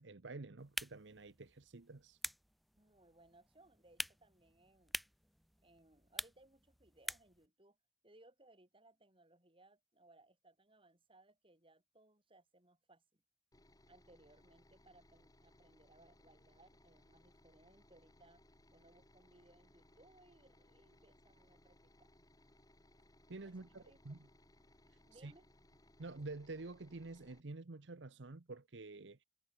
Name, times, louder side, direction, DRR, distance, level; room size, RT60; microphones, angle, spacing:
voice 1, 0.0-2.2 23.3-24.3 25.2-25.3 26.0-29.2, right 3 dB, 85° right, 1.0 m, -49 dB
sound 1, 0.6-7.5, equal, ahead, 2.3 m, -48 dB
voice 2, 2.7-5.0 5.6-7.8 8.0-13.2 13.9-18.4 18.7-22.1 23.4-24.0 25.0-25.4, right 2 dB, 30° right, 4.9 m, -66 dB
sound 2, 13.5-27.4, left 1 dB, 20° left, 4.3 m, -67 dB
head